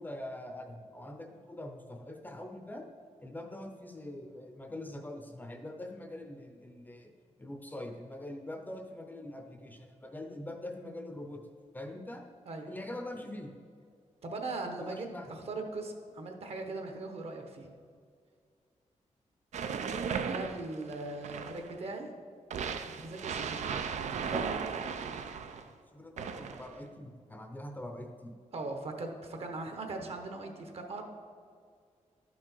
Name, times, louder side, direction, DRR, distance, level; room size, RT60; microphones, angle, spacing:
voice 1, 0.0-2.8 3.2-7.1 7.4-11.4 11.7-12.2 12.7-13.5 14.8-15.3 25.6-28.3, left 1 dB, 15° left, 4 dB, 0.6 m, -43 dB
voice 2, 14.2-17.7 20.3-22.1 23.0-23.8 24.3-24.5 28.5-31.0, right 2 dB, 55° right, 4 dB, 1.1 m, -39 dB
sound 1, 19.5-21.8 22.5-25.6 26.2-26.8, right 6 dB, 75° right, 0.5 m, -36 dB
12.5 x 6.1 x 4.5 m, 2.1 s
wide cardioid pair, 175°, 12 cm